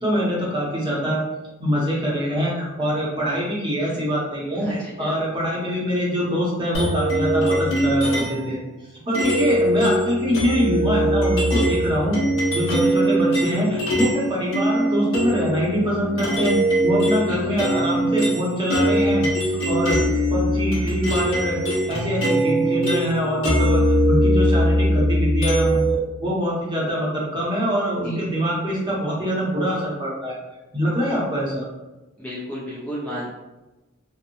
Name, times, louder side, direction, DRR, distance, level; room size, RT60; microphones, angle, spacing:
voice 1, 0.0-1.2 1.6-8.6 9.1-12.2 12.5-16.5 16.8-20.0 20.3-21.6 21.9-25.8 26.2-30.4 30.7-31.6, equal, 20° right, -5 dB, 0.7 m, -24 dB
sound 1, 6.7-8.5 9.1-14.2 14.5-26.0, right 1 dB, 70° left, 0.9 m, -21 dB
voice 2, 32.2-33.3, equal, 5° left, -7 dB, 0.4 m, -32 dB
2.9 x 2.0 x 2.6 m, 1.1 s
head